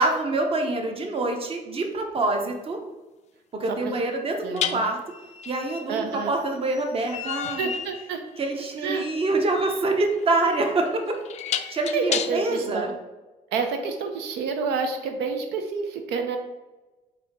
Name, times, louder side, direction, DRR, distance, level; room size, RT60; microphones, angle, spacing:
voice 1, 0.0-2.8 3.5-5.0 5.5-7.7 8.4-11.2 11.5-12.9, right 2 dB, 35° right, 3 dB, 0.8 m, -26 dB
sound 1, 2.2-2.3 4.6-12.6, left 9 dB, 40° left, 0.4 m, -33 dB
voice 2, 4.4-4.8 5.9-6.3 7.6-8.2 8.8-9.1 11.6-12.9 13.5-16.4, right 5 dB, 85° right, 5 dB, 0.6 m, -29 dB
4.2 x 2.7 x 4.6 m, 1.1 s
cardioid pair, 110°, 17 cm